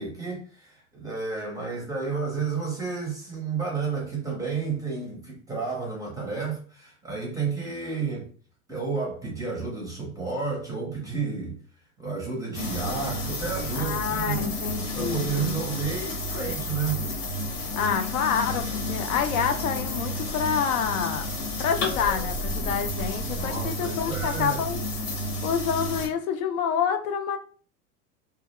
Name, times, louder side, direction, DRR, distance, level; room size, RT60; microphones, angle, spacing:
voice 1, 0.0-8.3 8.7-11.6 12.0-14.4 14.9-17.0 23.3-24.7, right 5 dB, 10° right, 0.5 m, -31 dB
sound 1, 12.5-26.1, left 1 dB, 90° left, 1.0 m, -31 dB
voice 2, 13.7-15.6 17.8-21.3 21.6-24.8 25.4-27.4, left 7 dB, 65° left, 0.6 m, -28 dB
2.3 x 2.0 x 2.9 m
hypercardioid pair, 125°, 45 cm